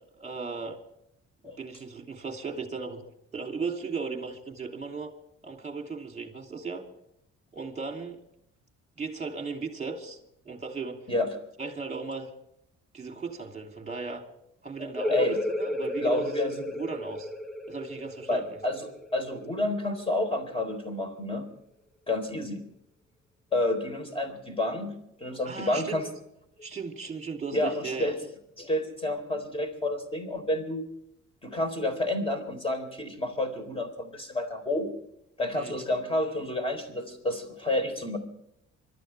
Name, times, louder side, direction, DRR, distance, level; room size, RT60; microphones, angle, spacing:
voice 1, 0.2-0.8 1.4-3.0 3.3-5.1 5.4-6.8 7.5-8.2 9.0-10.2 10.4-11.0 11.6-12.3 12.9-14.2 14.6-16.3 16.7-17.3 17.7-18.4 25.4-26.1 26.6-28.1 35.6-35.8, right 4 dB, 25° right, 4 dB, 2.9 m, -36 dB
voice 2, 14.8-15.4 16.0-16.7 18.3-21.4 22.1-22.6 23.5-24.9 25.2-26.1 27.5-28.1 28.6-30.8 31.4-34.9 35.4-38.2, left 1 dB, 20° left, 7 dB, 3.8 m, -29 dB
sound 1, 15.0-20.3, left 1 dB, ahead, 1.2 m, -33 dB
25.5 x 13.5 x 3.4 m, 0.77 s
cardioid pair, 90°, 30 cm